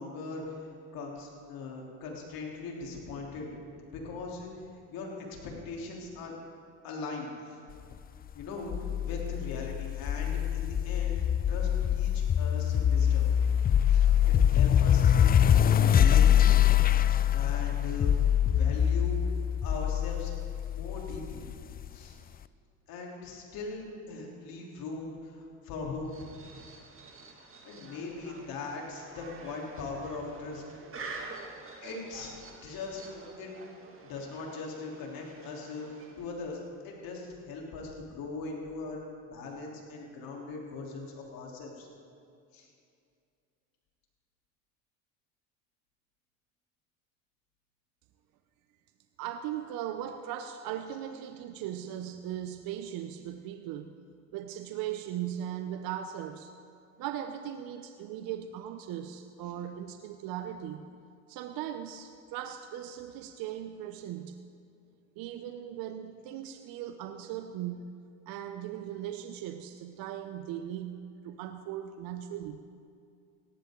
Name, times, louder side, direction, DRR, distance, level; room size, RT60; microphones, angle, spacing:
voice 1, 0.0-3.5 3.9-6.3 6.8-7.6 8.3-13.3 13.9-16.4 17.3-18.1 18.6-19.2 19.6-20.3 20.7-21.5 21.9-22.2 22.9-26.1 27.3-30.6 31.0-31.1 31.8-32.3 32.6-33.6 34.0-41.9 42.5-42.7, left 3 dB, 65° left, -1 dB, 3.6 m, -40 dB
sound 1, 8.7-21.9, left 9 dB, 25° left, 0.4 m, -24 dB
sound 2, 26.1-36.5, right 3 dB, 35° right, 2.2 m, -48 dB
voice 2, 49.2-54.0 54.3-56.5 57.0-60.9 61.3-64.4 65.2-67.9 68.3-72.6, right 10 dB, 65° right, 8 dB, 0.8 m, -38 dB
17.5 x 14.5 x 3.9 m, 2.4 s
supercardioid pair, 75°, 38 cm